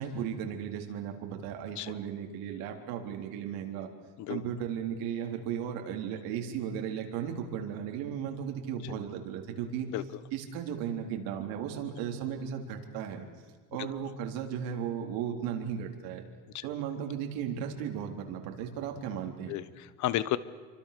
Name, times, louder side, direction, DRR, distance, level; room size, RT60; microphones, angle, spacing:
voice 1, 0.0-3.9 4.3-9.9 10.3-13.3 13.7-16.2 16.6-19.5, right 8 dB, 65° right, 3 dB, 3.7 m, -35 dB
voice 2, 9.9-10.2 13.8-13.9 16.5-16.6 19.5-20.4, left 13 dB, 50° left, 16 dB, 1.2 m, -32 dB
27.0 x 25.0 x 6.8 m, 1.5 s
cardioid pair, 155°, 37 cm